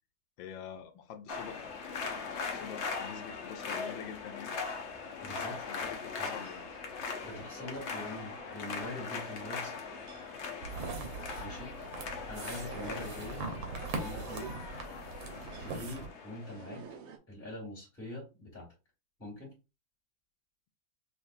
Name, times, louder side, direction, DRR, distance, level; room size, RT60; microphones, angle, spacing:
voice 1, 0.4-1.7 2.0-2.2 2.5-4.6 5.5-6.6, left 8 dB, 80° left, 1.4 m, -46 dB
sound 1, 1.3-16.8, left 5 dB, 55° left, 0.8 m, -40 dB
sound 2, 4.9-17.2, right 6 dB, 65° right, 0.8 m, -52 dB
voice 2, 5.2-5.6 6.2-6.3 7.2-9.9 11.4-11.7 12.2-13.4 13.9-14.6 15.6-16.9 17.3-18.7 19.2-19.5, left 2 dB, 25° left, 2.0 m, -43 dB
sound 3, 10.6-16.1, right 4 dB, 85° right, 1.7 m, -41 dB
5.9 x 2.5 x 2.5 m
omnidirectional pair, 2.1 m